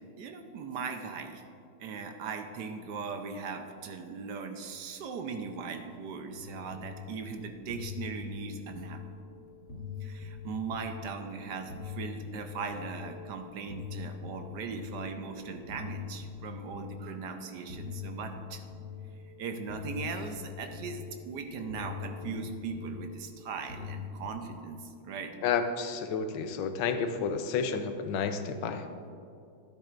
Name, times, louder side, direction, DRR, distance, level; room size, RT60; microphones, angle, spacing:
voice 1, 0.0-1.4 1.8-9.0 10.0-18.6 19.2-25.3, right 5 dB, 70° right, 5 dB, 1.1 m, -39 dB
sound 1, 6.3-24.3, left 7 dB, 35° left, 1.9 m, -43 dB
voice 2, 25.4-28.9, left 6 dB, 75° left, 8 dB, 1.4 m, -31 dB
12.0 x 10.0 x 2.5 m, 2.5 s
omnidirectional pair, 2.2 m